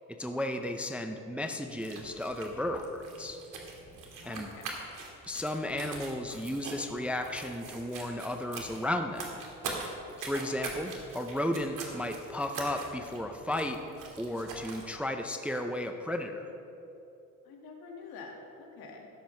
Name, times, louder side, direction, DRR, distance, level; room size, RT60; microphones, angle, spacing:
voice 1, 0.2-3.4 4.3-4.5 5.3-9.3 9.8-9.9 10.2-13.8 14.2-16.5, left 1 dB, 5° right, 5 dB, 0.4 m, -34 dB
sound 1, 1.7-14.9, right 3 dB, 65° right, 1.8 m, -43 dB
voice 2, 4.2-4.7 17.4-19.1, left 4 dB, 80° left, 1 dB, 1.8 m, -47 dB
13.0 x 10.5 x 3.2 m, 3.0 s
cardioid pair, 140°, 35 cm